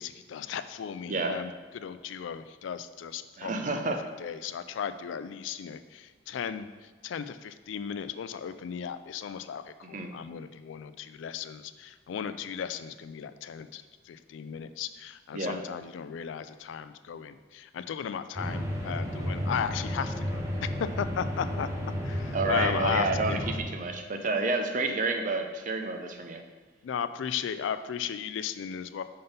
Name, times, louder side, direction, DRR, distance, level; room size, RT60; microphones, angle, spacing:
voice 1, 0.0-3.9 4.2-6.7 7.0-20.7 21.0-21.7 22.0-23.5 26.8-29.0, left 7 dB, 75° left, 12 dB, 0.3 m, -36 dB
voice 2, 1.1-1.4 3.4-4.0 9.8-10.1 15.3-15.6 22.3-26.4, right 3 dB, 40° right, 5 dB, 0.6 m, -30 dB
sound 1, 18.4-23.6, equal, 15° right, 0.8 m, -32 dB
5.3 x 4.0 x 5.3 m, 1.4 s
head